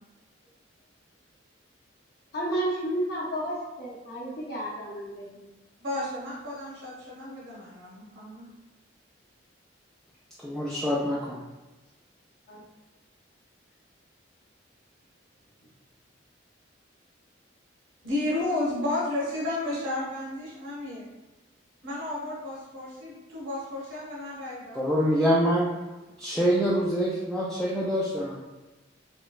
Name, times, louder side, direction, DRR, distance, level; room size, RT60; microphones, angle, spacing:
voice 1, 2.3-5.5 6.1-6.2 12.5-12.7, right 1 dB, 55° left, -5 dB, 0.7 m, -32 dB
voice 2, 5.8-8.5 18.0-21.0 21.8-24.8, left 1 dB, 70° right, -7 dB, 1.2 m, -32 dB
voice 3, 10.4-11.4 24.7-25.7 26.2-28.4, equal, 5° left, -6 dB, 0.3 m, -25 dB
3.1 x 3.0 x 2.3 m, 1.1 s
head